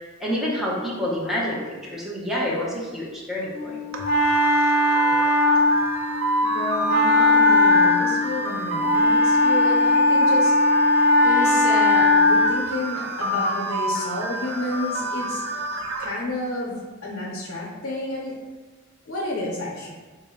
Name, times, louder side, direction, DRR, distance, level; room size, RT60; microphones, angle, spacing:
voice 1, 0.2-3.8, left 1 dB, ahead, -6 dB, 0.7 m, -28 dB
Wind instrument woodwind instrument, 3.5-12.6, left 2 dB, 45° left, 0.6 m, -19 dB
sound 1, 3.9-16.1, right 1 dB, 80° right, 0.4 m, -28 dB
voice 2, 6.4-10.7 11.2-15.4 16.0-18.4 19.0-20.0, left 2 dB, 90° left, -3 dB, 0.6 m, -30 dB
4.2 x 2.1 x 3.5 m, 1.4 s
head